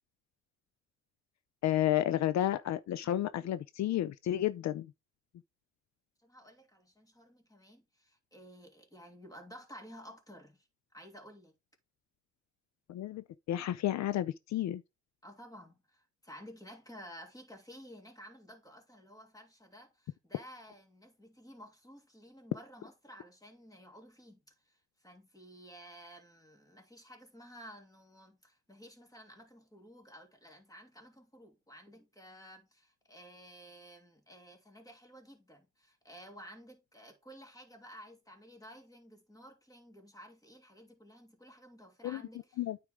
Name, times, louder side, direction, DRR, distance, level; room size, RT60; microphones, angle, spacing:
voice 1, 1.6-4.9 12.9-14.8 42.0-42.2 42.6-42.8, left 12 dB, 65° left, 0.6 m, -31 dB
voice 2, 6.2-10.7 10.9-11.5 15.2-42.6, equal, 10° left, 2.8 m, -53 dB
9.2 x 4.8 x 3.6 m
cardioid pair, 90°, 30 cm